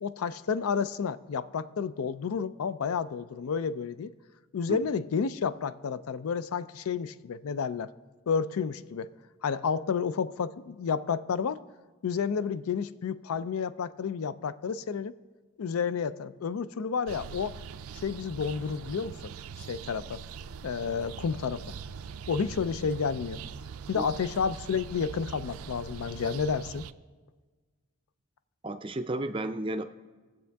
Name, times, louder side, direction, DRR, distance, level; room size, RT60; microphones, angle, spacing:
voice 1, 0.0-4.1 4.5-7.9 8.3-9.1 9.4-11.6 12.0-15.1 15.6-17.6 18.0-19.3 19.6-20.2 20.6-21.6 22.3-23.4 23.9-26.9, left 6 dB, 90° left, 16 dB, 0.4 m, -30 dB
sound 1, 17.1-26.9, right 6 dB, 90° right, 0.4 m, -42 dB
voice 2, 28.6-29.8, right 1 dB, 25° right, 9 dB, 0.4 m, -32 dB
19.0 x 7.4 x 3.4 m, 1.4 s
head